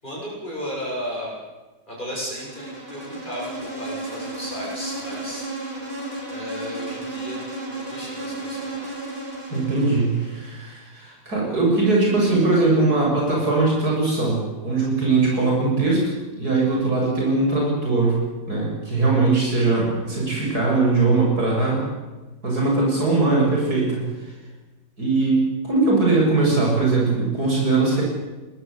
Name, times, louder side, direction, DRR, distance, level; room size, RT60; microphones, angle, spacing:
voice 1, 0.0-1.3 1.9-5.5 6.3-8.8, equal, 25° left, -5 dB, 8.1 m, -34 dB
Insect, 2.2-10.4, right 2 dB, 25° right, 6.6 m, -33 dB
voice 2, 9.5-16.1 16.4-18.2 18.5-21.9 22.4-24.3 25.0-28.0, right 3 dB, 55° right, -2 dB, 7.1 m, -20 dB
24.0 x 19.5 x 8.1 m, 1.2 s
omnidirectional pair, 1.9 m